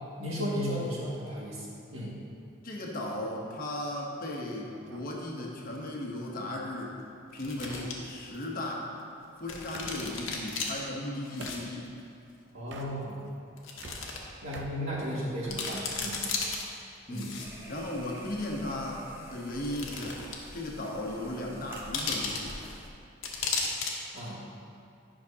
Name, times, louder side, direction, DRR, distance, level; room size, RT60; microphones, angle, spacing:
voice 1, 0.2-1.7 1.9-2.1 12.5-13.2 14.4-16.2 17.1-17.3 24.1-24.4, equal, 85° right, -6 dB, 1.8 m, -34 dB
voice 2, 2.6-7.0 7.3-8.9 9.4-11.8 17.1-17.4 17.7-20.2 20.5-22.6, left 1 dB, 45° left, -1 dB, 0.9 m, -36 dB
sound 1, 4.7-10.0 11.4-11.7 12.6-13.3 13.6-15.6, right 3 dB, 60° right, 0.6 m, -49 dB
sound 2, 5.8-5.9 7.3-7.9 8.4-8.5 9.5-10.7 11.2-11.6 11.8-11.9 12.8-12.9 13.6-14.2 14.6-14.7 15.1-15.2 15.4-16.6 17.1-17.8 18.7-18.8 19.6-20.5 20.8-20.9 21.9-22.7 23.2-23.9 24.2-24.3, left 4 dB, 70° left, 1.0 m, -34 dB
sound 3, 17.4-22.9, equal, 10° right, 0.7 m, -48 dB
10.5 x 5.8 x 2.8 m, 2.5 s
head